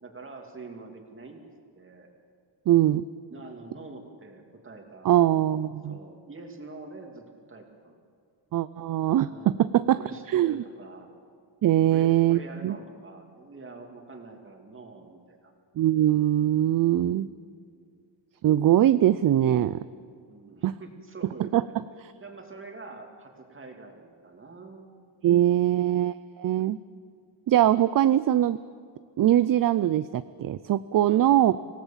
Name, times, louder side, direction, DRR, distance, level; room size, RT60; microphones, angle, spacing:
voice 1, 0.0-1.4 1.7-2.1 3.3-5.4 5.8-8.0 9.2-9.6 10.0-11.1 11.9-15.5 17.6-17.9 20.3-21.8 22.2-24.9 25.3-25.8 31.1-31.4, right 3 dB, 25° right, 3 dB, 2.6 m, -45 dB
voice 2, 2.7-3.1 5.0-6.0 8.5-10.0 10.3-10.6 11.6-12.8 15.8-17.3 18.4-19.8 20.6-20.7 21.4-21.6 25.2-26.8 27.5-28.6 29.2-31.5, right 12 dB, 50° right, 15 dB, 0.4 m, -22 dB
26.0 x 17.5 x 7.4 m, 2.3 s
wide cardioid pair, 150°, 46 cm